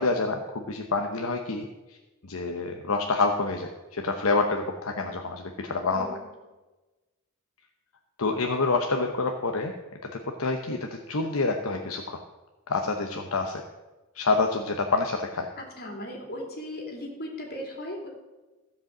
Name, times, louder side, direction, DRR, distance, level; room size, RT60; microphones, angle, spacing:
voice 1, 0.0-2.0 2.2-6.1 8.2-9.7 10.0-12.2 12.7-13.6 14.1-15.5, left 3 dB, 70° left, 3 dB, 0.9 m, -27 dB
voice 2, 5.9-6.3 15.6-18.1, left 1 dB, 50° left, 0 dB, 2.8 m, -37 dB
15.5 x 5.3 x 7.3 m, 1.1 s
head